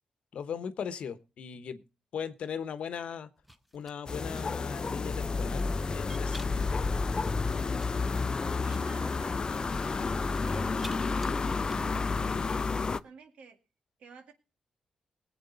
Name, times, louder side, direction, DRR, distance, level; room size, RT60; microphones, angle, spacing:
voice 1, 0.3-1.8 2.1-3.3 3.7-6.7, left 7 dB, 70° left, 1.0 m, -38 dB
sound 1, 3.4-4.4 5.5-6.7 7.4-8.8 9.9-11.0 11.2-12.9, equal, 5° right, 1.3 m, -50 dB
sound 2, 4.1-13.0, left 4 dB, 40° left, 0.6 m, -30 dB
voice 2, 8.6-10.0 10.4-13.6 14.0-14.3, right 5 dB, 75° right, 2.0 m, -52 dB
19.5 x 7.9 x 3.9 m
supercardioid pair, 50°, 2 cm